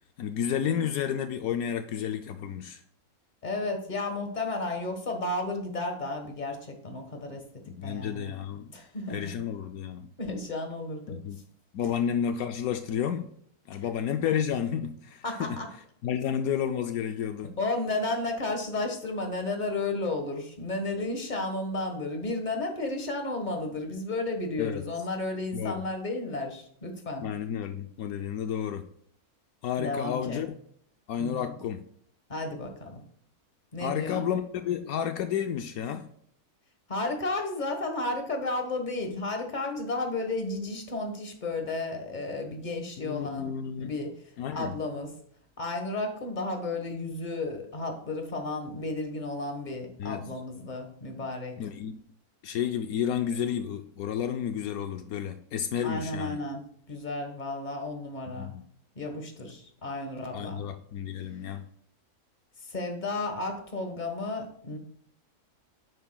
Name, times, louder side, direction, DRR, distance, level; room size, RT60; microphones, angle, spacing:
voice 1, 0.2-2.8 7.7-8.7 9.1-10.1 11.1-11.4 11.7-13.3 13.7-15.6 16.0-17.5 24.6-24.8 25.5-25.8 27.2-28.9 29.6-30.6 31.1-31.8 33.8-36.1 43.0-43.9 44.4-44.7 50.0-50.2 51.6-52.0 52.4-56.4 58.3-58.6 60.3-61.7, left 8 dB, 80° left, 7 dB, 1.0 m, -31 dB
voice 2, 3.4-7.4 7.8-8.3 8.7-9.3 10.2-11.2 13.7-13.9 15.2-15.7 17.6-27.3 29.8-30.4 31.2-31.6 32.3-33.0 33.7-34.3 36.9-44.1 44.5-45.1 45.6-51.6 55.8-58.5 58.9-60.6 62.6-64.8, left 2 dB, 30° left, 4 dB, 1.5 m, -33 dB
10.5 x 9.3 x 2.3 m, 0.64 s
omnidirectional pair, 1.6 m